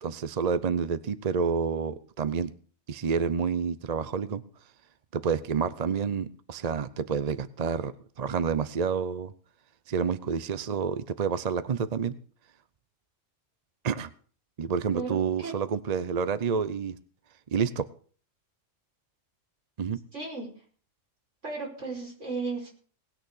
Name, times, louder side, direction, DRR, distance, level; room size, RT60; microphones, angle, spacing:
voice 1, 0.0-2.5 2.9-4.4 5.1-9.3 9.9-12.1 13.8-14.1 14.6-17.0 17.5-17.8 19.8-20.0, right 6 dB, 40° right, 15 dB, 0.6 m, -29 dB
voice 2, 20.1-20.5 21.4-22.7, right 4 dB, 65° right, -2 dB, 5.8 m, -34 dB
19.0 x 6.5 x 7.1 m, 0.44 s
omnidirectional pair, 1.3 m